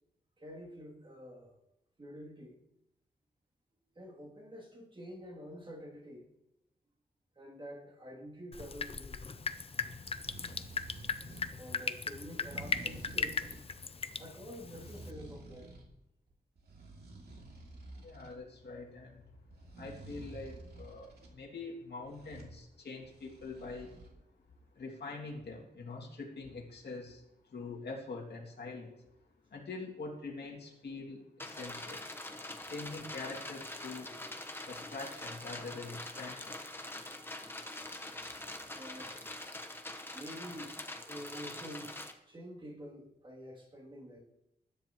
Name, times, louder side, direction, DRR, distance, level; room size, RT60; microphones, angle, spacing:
voice 1, 0.4-1.5 2.0-2.6 3.9-6.3 7.4-9.3 11.6-13.5 14.2-15.7 32.6-32.7 38.7-39.2 40.1-40.8 41.0-44.2, equal, 30° right, -3 dB, 2.8 m, -48 dB
Drip, 8.5-15.1, left 5 dB, 35° left, 0.6 m, -38 dB
sound 1, 10.0-11.6 12.3-13.7 14.4-15.9 16.3-18.4 19.5-21.3 22.0-22.5 23.0-24.1, right 2 dB, 65° right, 2.7 m, -50 dB
voice 2, 17.9-19.2 19.7-23.9 24.7-29.0 29.5-32.1 32.6-34.1 34.6-36.6, left 3 dB, 70° left, -3 dB, 2.5 m, -44 dB
sound 2, 31.4-42.1, left 1 dB, 10° left, 1.1 m, -44 dB
20.5 x 10.5 x 3.0 m, 0.86 s
wide cardioid pair, 160°, 18 cm